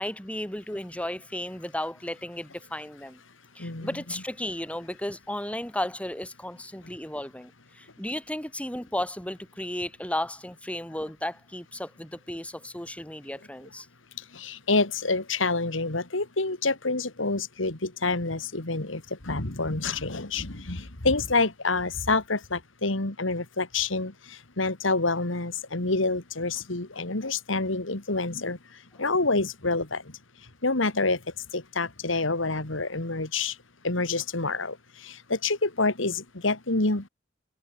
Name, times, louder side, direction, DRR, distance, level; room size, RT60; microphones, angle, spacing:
voice 1, 0.0-3.2 3.5-13.9, left 1 dB, 5° left, 3.2 m, -34 dB
voice 2, 14.3-28.6 29.0-30.0 30.6-31.2 31.5-33.6 33.8-34.8 35.0-37.1, left 3 dB, 80° left, 2.6 m, -27 dB
head